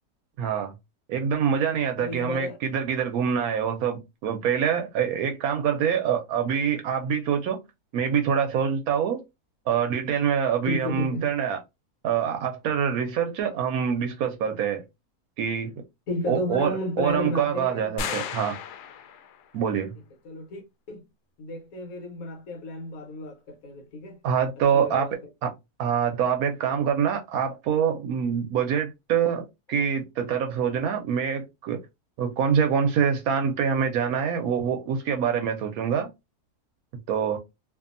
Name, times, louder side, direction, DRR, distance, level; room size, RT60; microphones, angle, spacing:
voice 1, 0.4-0.7 1.1-7.6 7.9-9.2 9.7-11.6 12.0-14.8 15.4-15.7 16.3-18.5 19.5-19.9 24.2-25.1 25.4-25.5 25.8-31.8 32.2-36.1 37.1-37.4, right 7 dB, 75° right, 1.0 m, -25 dB
voice 2, 2.0-2.6 10.6-11.4 16.1-18.2 20.2-20.6 20.9-21.0 21.4-24.2 24.7-25.1, left 2 dB, 65° left, 1.4 m, -32 dB
sound 1, 18.0-19.5, left 7 dB, 90° left, 1.1 m, -34 dB
2.6 x 2.6 x 2.5 m
omnidirectional pair, 1.6 m